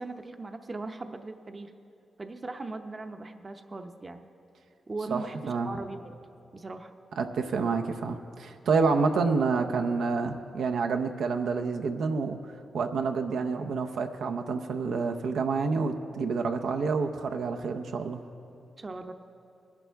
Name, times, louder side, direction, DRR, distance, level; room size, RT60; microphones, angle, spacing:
voice 1, 0.0-1.7 2.2-4.3 4.9-6.2 6.5-6.9 8.6-8.7 18.8-19.1, right 3 dB, 35° right, 6 dB, 0.7 m, -39 dB
voice 2, 5.1-5.7 7.2-12.4 12.7-18.2, right 4 dB, 85° right, 5 dB, 0.6 m, -28 dB
20.0 x 10.5 x 3.4 m, 2.7 s
cardioid pair, 85°, 0 cm